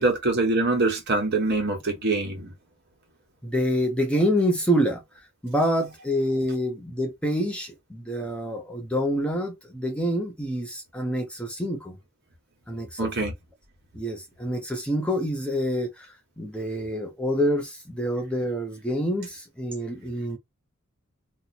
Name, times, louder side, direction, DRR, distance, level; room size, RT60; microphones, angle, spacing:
voice 1, 0.0-2.5 13.0-13.3, right 2 dB, 50° right, 1.2 m, -24 dB
voice 2, 3.4-5.0 5.4-12.0 12.7-13.1 13.9-16.1 16.4-20.4, equal, 5° left, 0.6 m, -27 dB
2.8 x 2.0 x 4.0 m
head